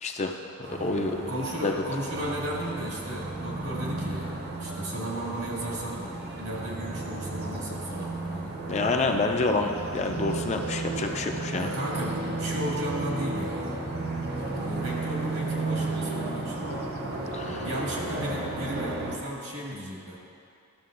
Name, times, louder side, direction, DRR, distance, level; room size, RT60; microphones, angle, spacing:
voice 1, 0.0-0.3 0.7-1.2 1.6-1.7 8.7-11.7 17.3-17.7, left 3 dB, 30° left, 3 dB, 0.4 m, -28 dB
sound 1, 0.6-19.2, right 2 dB, 45° right, 0.8 m, -33 dB
voice 2, 1.3-4.3 4.6-8.6 11.5-13.8 14.6-16.6 17.6-20.2, equal, 80° right, -4 dB, 1.8 m, -35 dB
12.5 x 6.7 x 2.5 m, 2.5 s
head